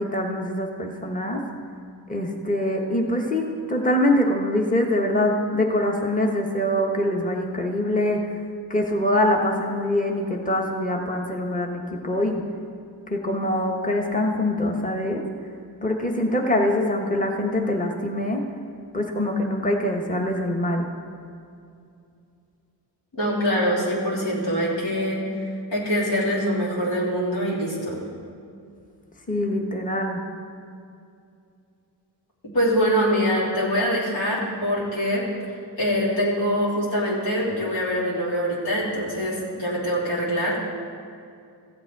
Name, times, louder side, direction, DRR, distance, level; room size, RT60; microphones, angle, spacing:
voice 1, 0.0-1.4 2.1-8.2 8.7-12.4 13.1-15.2 15.8-18.4 18.9-20.9 29.3-30.2, left 1 dB, 20° left, 1 dB, 1.2 m, -24 dB
voice 2, 23.1-25.2 25.7-28.0 32.5-35.5 35.8-40.6, equal, 85° left, -6 dB, 3.3 m, -24 dB
15.0 x 7.7 x 4.7 m, 2.5 s
cardioid pair, 55°, 43 cm